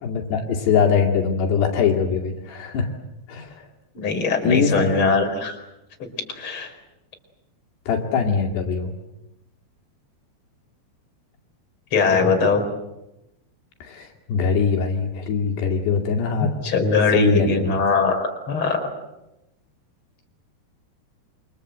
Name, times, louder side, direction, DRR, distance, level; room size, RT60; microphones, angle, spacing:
voice 1, 0.0-2.9 3.3-3.6 4.4-5.1 7.9-8.9 13.8-16.5 17.1-17.8, left 6 dB, 75° left, 1 dB, 4.5 m, -22 dB
voice 2, 3.9-5.5 6.0-6.1 6.3-6.7 11.9-12.6 16.6-18.9, left 4 dB, 30° left, 4 dB, 4.9 m, -21 dB
28.5 x 26.0 x 8.0 m, 0.92 s
omnidirectional pair, 4.9 m